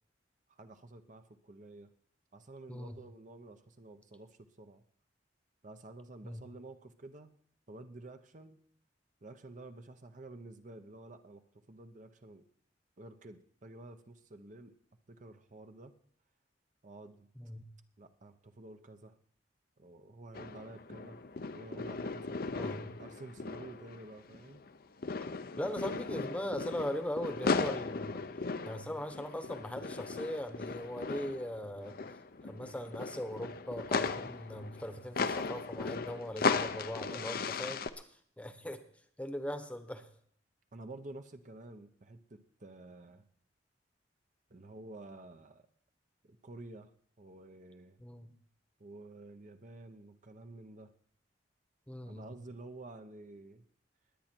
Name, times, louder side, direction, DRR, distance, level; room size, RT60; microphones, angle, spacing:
voice 1, 0.5-1.9 2.3-4.8 5.6-7.3 7.7-8.6 9.2-12.5 13.0-14.8 15.1-15.9 16.8-17.3 18.0-19.2 19.8-21.2 21.5-22.4 23.0-24.6 37.0-37.4 40.7-43.3 44.5-45.7 46.2-46.9 47.2-48.0 48.8-50.9 52.1-53.6, right 2 dB, 45° right, 8 dB, 0.8 m, -50 dB
voice 2, 2.7-3.0 6.2-6.4 17.4-17.7 22.6-22.9 25.6-28.2 28.6-32.0 32.4-37.8 38.4-38.8 39.2-40.1 48.0-48.3 51.9-52.4, left 1 dB, 10° left, 8 dB, 1.0 m, -39 dB
sound 1, 20.3-24.8 25.0-37.9, left 4 dB, 55° left, 0.7 m, -37 dB
20.5 x 8.8 x 4.5 m, 0.63 s
head